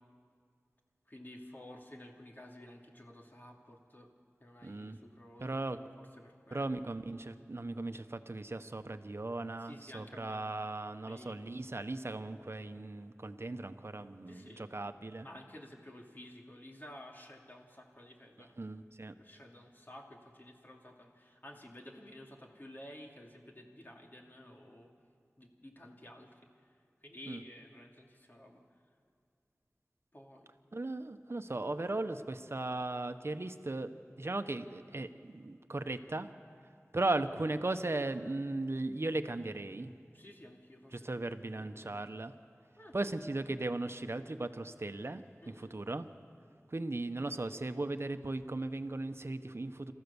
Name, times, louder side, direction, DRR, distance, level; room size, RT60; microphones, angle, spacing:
voice 1, 1.1-4.1 4.4-6.8 9.6-10.5 11.1-11.7 14.3-14.6 15.2-18.6 19.2-24.9 25.4-26.4 27.0-28.6 30.1-30.5 40.1-41.1 41.6-42.0 42.8-43.1 45.4-45.8, left 1 dB, 40° left, 0 dB, 2.7 m, -53 dB
voice 2, 4.6-5.0 5.4-5.8 6.5-15.3 18.6-19.1 27.3-27.4 30.7-33.9 34.2-36.3 36.9-39.9 41.0-42.3 42.9-46.0 46.7-49.9, right 2 dB, 55° right, 9 dB, 1.0 m, -37 dB
27.5 x 14.0 x 7.1 m, 2.3 s
wide cardioid pair, 40°, 5 cm